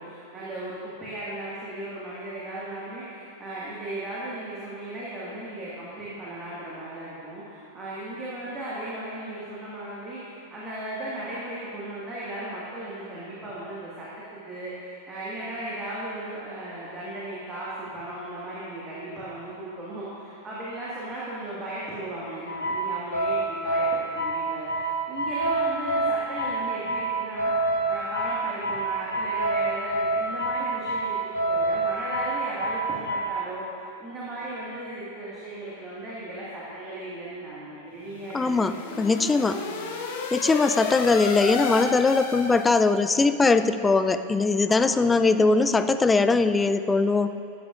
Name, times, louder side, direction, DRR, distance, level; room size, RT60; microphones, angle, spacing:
voice 1, 0.0-39.0 39.5-40.0 44.7-45.3, right 1 dB, 20° right, -8 dB, 1.8 m, -36 dB
sound 1, 22.5-33.3, right 2 dB, 80° left, 2.1 m, -27 dB
sound 2, 38.0-43.1, left 4 dB, 55° left, 0.9 m, -32 dB
voice 2, 38.3-39.6 40.3-47.3, left 3 dB, 10° left, 11 dB, 0.3 m, -21 dB
12.5 x 9.3 x 2.5 m, 2.6 s
figure-of-eight pair, 90°, 0 cm